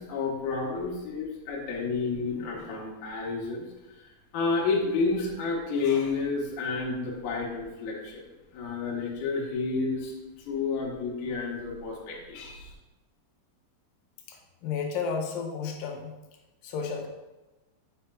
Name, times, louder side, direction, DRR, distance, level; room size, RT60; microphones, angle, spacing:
voice 1, 0.0-3.7 3.9-4.0 4.3-8.2 8.5-12.7, left 4 dB, 65° left, -4 dB, 2.4 m, -30 dB
voice 2, 14.3-16.2 16.6-17.1, left 5 dB, 80° left, 2 dB, 2.4 m, -32 dB
7.7 x 5.7 x 2.3 m, 1.1 s
omnidirectional pair, 4.2 m